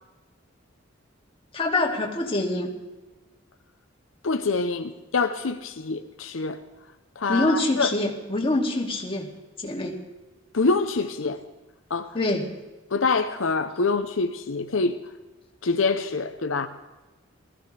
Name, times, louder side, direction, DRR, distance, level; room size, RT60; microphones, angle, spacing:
voice 1, 1.5-2.7 7.3-9.3 9.6-10.0 12.1-12.4, left 2 dB, 30° left, -1 dB, 2.5 m, -25 dB
voice 2, 4.2-6.6 7.2-7.9 10.5-11.4 11.9-12.2 12.9-15.0 15.6-16.7, left 4 dB, 80° left, 7 dB, 0.8 m, -25 dB
20.0 x 15.5 x 3.4 m, 1.2 s
head